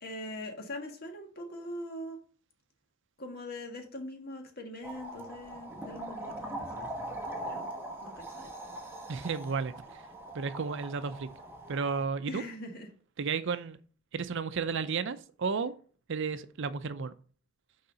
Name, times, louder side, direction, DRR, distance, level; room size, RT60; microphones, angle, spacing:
voice 1, 0.0-2.2 3.2-6.5 7.4-7.7 8.0-8.5 12.3-12.9, left 1 dB, 50° left, 1.6 m, -42 dB
sound 1, 4.8-12.0, right 1 dB, 10° right, 1.2 m, -41 dB
voice 2, 9.1-9.7 10.3-11.3 11.7-12.4 13.2-13.8 14.1-15.7 16.1-17.1, right 5 dB, 65° right, 0.6 m, -32 dB
6.6 x 4.8 x 5.5 m
head